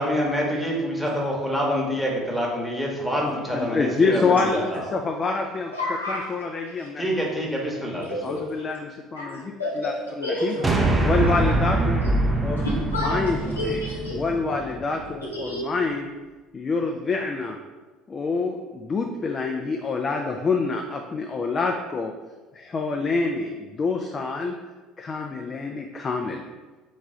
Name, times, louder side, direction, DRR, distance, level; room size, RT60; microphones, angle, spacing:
voice 1, 0.0-4.9 7.0-8.4, equal, ahead, -3 dB, 1.1 m, -26 dB
voice 2, 3.5-4.6 4.9-5.7 6.1-7.0 8.2-10.5 11.0-12.0 12.4-12.7 13.0-13.8 14.1-16.1 16.5-17.6 18.1-22.1 22.5-24.5 25.0-26.4, left 4 dB, 30° left, 2 dB, 0.4 m, -26 dB
voice 3, 5.7-6.3 8.1-8.4 9.1-11.3 12.6-14.2 15.3-15.6, left 1 dB, 90° left, -5 dB, 0.8 m, -30 dB
sound 1, 10.6-15.1, right 2 dB, 20° right, 0.5 m, -24 dB
3.5 x 3.1 x 3.7 m, 1.2 s
figure-of-eight pair, 60°, 0 cm